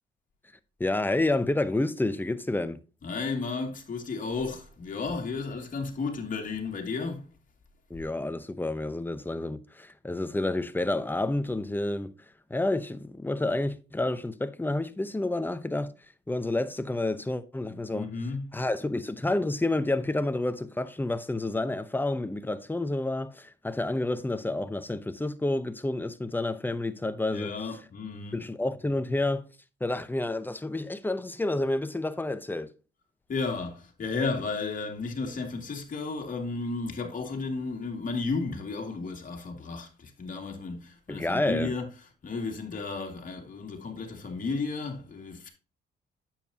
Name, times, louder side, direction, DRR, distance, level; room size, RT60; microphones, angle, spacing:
voice 1, 0.8-2.8 7.9-12.1 12.5-15.9 16.3-18.1 18.5-27.5 28.3-29.5 29.8-32.7 41.1-41.7, left 2 dB, 10° left, 0.7 m, -29 dB
voice 2, 3.0-7.3 17.6-18.6 27.3-28.4 33.3-41.9 42.2-45.5, left 4 dB, 40° left, 2.5 m, -33 dB
9.0 x 7.5 x 2.8 m
cardioid pair, 90°, 20 cm